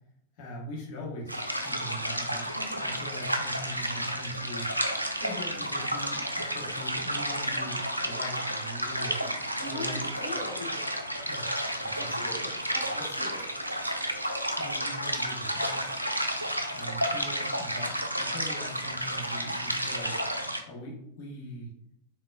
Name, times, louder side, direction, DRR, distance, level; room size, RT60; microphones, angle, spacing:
voice 1, 0.4-4.7 5.2-9.1 9.6-10.1 11.2-12.3 12.9-13.0 14.6-16.0 16.7-20.2 20.7-21.7, equal, 45° left, -4 dB, 1.0 m, -41 dB
sound 1, 1.3-20.6, equal, 85° right, 0.3 m, -31 dB
voice 2, 2.5-2.8 9.0-10.9 12.0-13.5, left 1 dB, 80° left, -5 dB, 1.0 m, -41 dB
3.8 x 2.2 x 2.4 m, 0.77 s
figure-of-eight pair, 90°, 0 cm